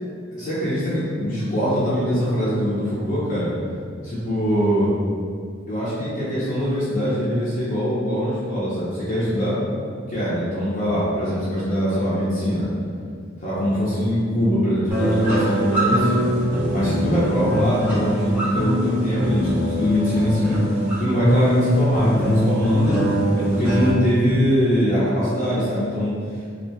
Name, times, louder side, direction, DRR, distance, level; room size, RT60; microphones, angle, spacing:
voice 1, 0.3-3.5 4.0-4.9 5.7-9.6 10.1-12.7 13.4-16.3 16.7-20.6 21.0-23.0 23.4-26.1, equal, 45° left, -11 dB, 0.6 m, -22 dB
sound 1, 14.9-23.9, equal, 10° right, 0.7 m, -22 dB
2.4 x 2.2 x 2.7 m, 2.1 s
head